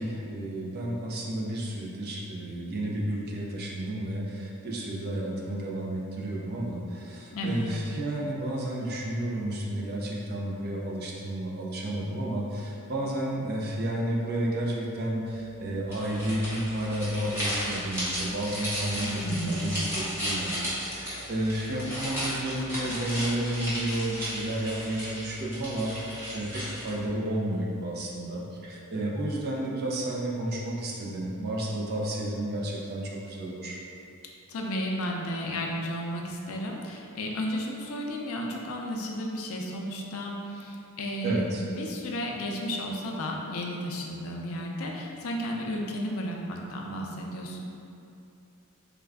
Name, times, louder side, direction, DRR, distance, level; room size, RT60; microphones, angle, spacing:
voice 1, 0.0-19.2 19.5-33.8 41.2-41.6, right 1 dB, 45° right, -3 dB, 0.5 m, -31 dB
sound 1, 15.9-27.1, equal, 10° right, 0.9 m, -34 dB
voice 2, 19.2-19.8 34.5-47.6, equal, 65° left, 0 dB, 0.4 m, -33 dB
3.4 x 2.3 x 3.4 m, 2.6 s
head